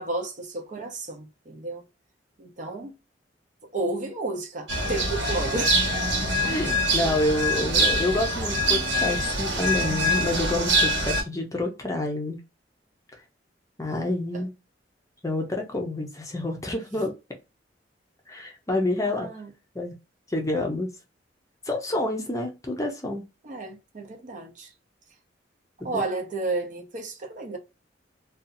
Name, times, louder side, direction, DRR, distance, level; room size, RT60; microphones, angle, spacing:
voice 1, 0.0-1.8 2.4-2.9 3.6-5.8 14.3-14.4 16.9-17.0 19.0-19.5 23.4-24.7 25.8-27.6, right 2 dB, 45° right, 0.6 m, -32 dB
sound 1, 4.7-11.2, equal, 85° right, 1.3 m, -24 dB
voice 2, 6.5-12.4 13.8-14.5 15.2-17.1 18.3-19.3 19.7-19.9 20.3-20.9 21.7-23.2 25.8-26.0, left 1 dB, 20° left, 0.6 m, -28 dB
2.6 x 2.3 x 2.6 m
head